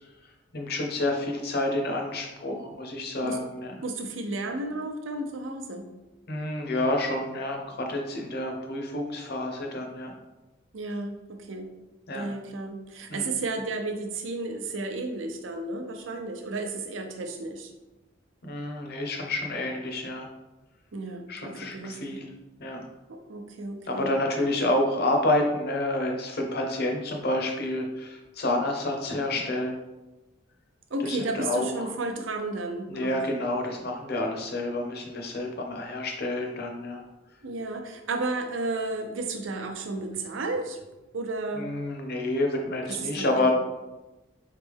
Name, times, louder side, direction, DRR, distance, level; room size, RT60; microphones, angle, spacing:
voice 1, 0.5-3.8 6.3-10.1 12.1-12.3 13.1-13.3 18.4-20.3 21.3-22.3 22.6-22.8 23.9-29.8 31.0-31.9 32.9-37.0 41.6-43.5, left 1 dB, 55° left, 2 dB, 0.8 m, -29 dB
voice 2, 3.8-5.9 10.7-11.7 12.1-17.7 20.9-22.2 23.1-24.1 30.9-33.2 37.4-40.8 41.1-41.7 42.9-43.5, right 2 dB, 75° right, 5 dB, 0.6 m, -33 dB
4.3 x 3.2 x 3.5 m, 1.0 s
head